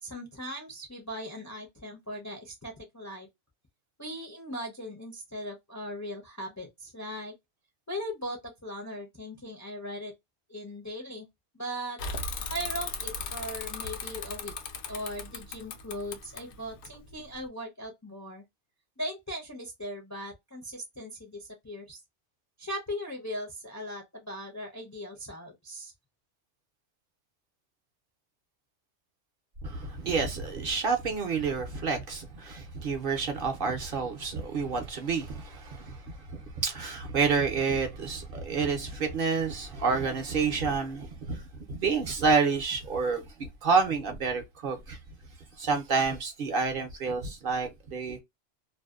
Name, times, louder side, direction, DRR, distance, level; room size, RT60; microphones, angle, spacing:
voice 1, 0.0-3.3 4.0-7.3 7.9-10.1 10.5-11.3 11.5-12.0 12.5-14.5 14.9-18.4 19.0-22.0 22.6-25.9, equal, 25° left, 0.4 m, -39 dB
Bicycle / Mechanisms, 12.0-17.4, left 4 dB, 75° left, 0.9 m, -37 dB
voice 2, 29.6-45.0 45.6-48.2, right 5 dB, 55° right, 0.7 m, -29 dB
2.6 x 2.1 x 2.2 m
omnidirectional pair, 1.2 m